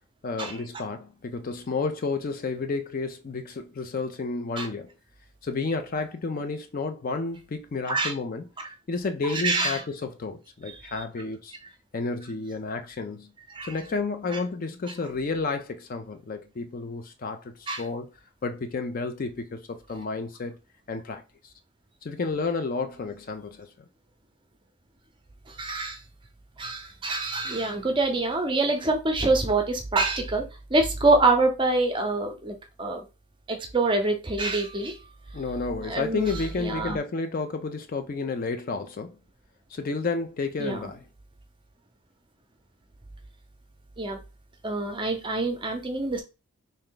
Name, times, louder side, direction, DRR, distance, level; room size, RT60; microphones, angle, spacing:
voice 1, 0.2-4.9 5.4-8.5 8.9-11.6 11.9-13.3 13.6-18.1 18.4-20.6 20.9-21.5 22.0-23.7 35.3-39.2 39.7-41.0, left 3 dB, 40° left, 0.4 m, -31 dB
voice 2, 9.3-9.8 13.5-13.7 14.3-14.4 17.7-17.8 25.5-26.0 26.6-30.4 30.7-33.0 33.5-35.0 35.8-37.0 40.6-40.9 44.0-44.2 44.6-46.2, right 2 dB, 20° right, 0.6 m, -25 dB
3.3 x 2.7 x 3.8 m
head